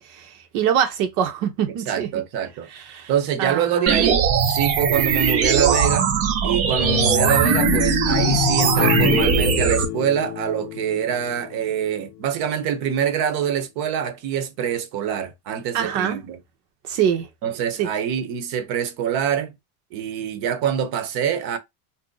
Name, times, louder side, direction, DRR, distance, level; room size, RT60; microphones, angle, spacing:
voice 1, 0.0-2.1 2.7-3.1 3.4-4.0 15.7-16.2 16.8-17.3 17.8-17.9, right 9 dB, 85° right, 1.0 m, -24 dB
voice 2, 1.9-2.7 3.1-6.1 6.4-16.4 17.4-19.5 19.9-21.6, right 8 dB, 55° right, 0.8 m, -25 dB
sound 1, 3.9-9.9, right 7 dB, 35° right, 0.5 m, -20 dB
sound 2, 6.8-11.9, left 16 dB, 35° left, 0.4 m, -26 dB
2.7 x 2.2 x 3.7 m
cardioid pair, 145°, 45 cm